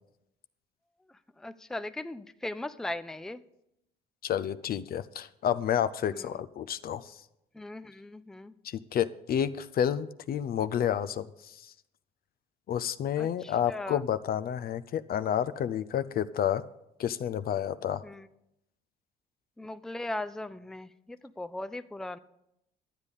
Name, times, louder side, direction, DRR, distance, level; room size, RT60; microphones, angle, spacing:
voice 1, 1.4-3.4 6.1-6.3 7.5-8.5 13.2-14.0 18.0-18.3 19.6-22.2, left 1 dB, 5° left, 12 dB, 0.5 m, -38 dB
voice 2, 4.2-7.1 8.6-11.6 12.7-16.6 17.0-18.0, left 9 dB, 55° left, 15 dB, 0.6 m, -30 dB
12.0 x 8.2 x 5.3 m, 0.82 s
supercardioid pair, 75°, 19 cm